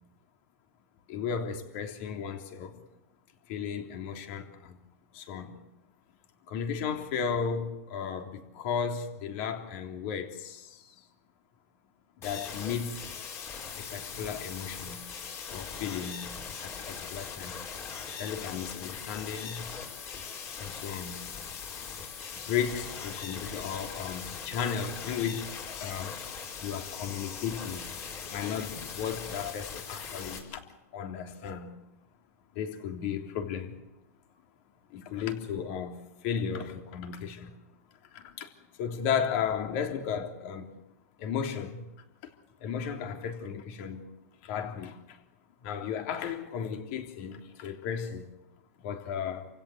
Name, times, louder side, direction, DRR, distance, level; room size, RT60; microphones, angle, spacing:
voice 1, 1.1-2.8 3.5-4.8 5.1-5.5 6.5-10.9 12.2-13.1 13.8-15.0 15.5-16.3 16.6-17.5 18.2-19.7 20.6-21.2 22.4-25.5 25.8-26.2 26.6-27.9 28.3-30.6 30.9-31.8 32.5-33.7 34.9-37.6 38.1-38.5 38.8-40.7 41.2-41.9 42.6-44.0 44.4-45.2 45.6-48.3 48.8-49.5, left 7 dB, 50° left, 3.3 m, -34 dB
sound 1, 12.2-30.4, left 6 dB, 30° left, 5.1 m, -40 dB
28.5 x 16.5 x 8.0 m
supercardioid pair, 145°, 9 cm